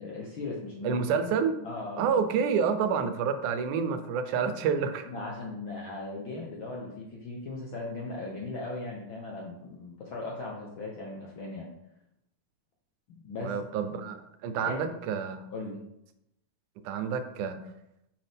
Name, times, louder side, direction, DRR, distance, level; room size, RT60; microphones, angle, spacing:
voice 1, 0.0-1.0 1.6-2.0 5.1-11.7 13.1-13.6 14.7-14.8 15.5-15.8, left 2 dB, 65° left, -2 dB, 1.2 m, -38 dB
voice 2, 0.8-1.7 2.0-5.1 13.4-15.4 16.8-17.6, right 6 dB, 85° right, 9 dB, 2.2 m, -28 dB
8.4 x 5.5 x 3.5 m, 0.83 s
omnidirectional pair, 3.5 m